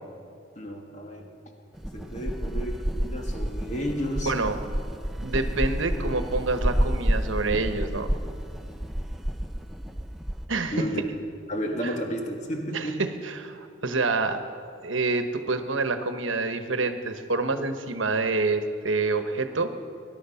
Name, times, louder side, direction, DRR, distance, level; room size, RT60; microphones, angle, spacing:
voice 1, 0.5-1.3 1.9-4.3 10.7-11.0 11.5-13.0, equal, 40° left, 2 dB, 1.7 m, -32 dB
sound 1, 1.7-10.4, equal, ahead, 0.7 m, -29 dB
voice 2, 4.2-4.6 5.2-8.1 10.5-11.0 11.8-11.9 12.7-14.4 14.8-19.7, right 3 dB, 85° right, 8 dB, 1.1 m, -27 dB
20.5 x 11.5 x 5.7 m, 2.4 s
head